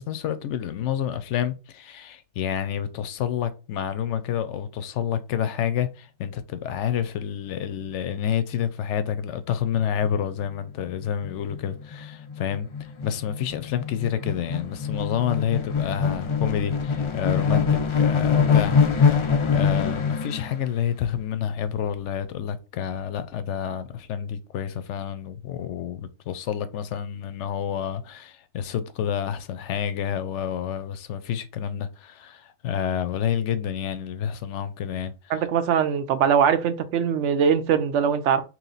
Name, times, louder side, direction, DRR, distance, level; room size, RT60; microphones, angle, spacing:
voice 1, 0.0-12.7 13.0-35.5, left 9 dB, 85° left, 0.9 m, -29 dB
sound 1, 10.5-10.6 10.8-20.5, left 6 dB, 55° left, 0.3 m, -24 dB
voice 2, 35.3-38.4, right 7 dB, 85° right, 0.9 m, -21 dB
3.1 x 3.0 x 3.9 m
omnidirectional pair, 1.2 m